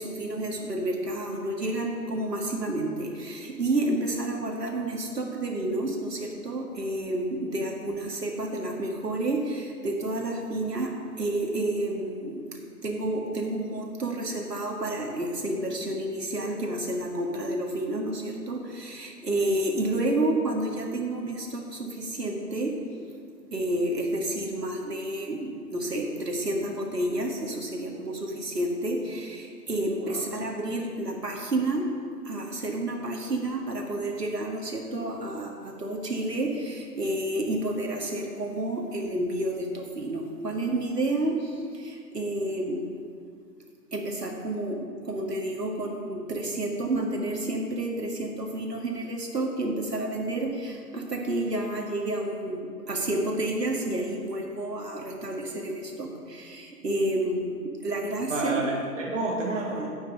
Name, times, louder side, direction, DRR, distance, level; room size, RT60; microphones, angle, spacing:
voice 1, 0.0-10.9 11.2-12.4 12.8-22.7 23.5-31.8 32.3-42.8 43.9-58.6, right 1 dB, 75° right, 0 dB, 2.0 m, -30 dB
voice 2, 58.3-59.9, right 2 dB, 50° right, -1 dB, 1.5 m, -29 dB
9.9 x 6.0 x 7.6 m, 2.1 s
figure-of-eight pair, 135°, 48 cm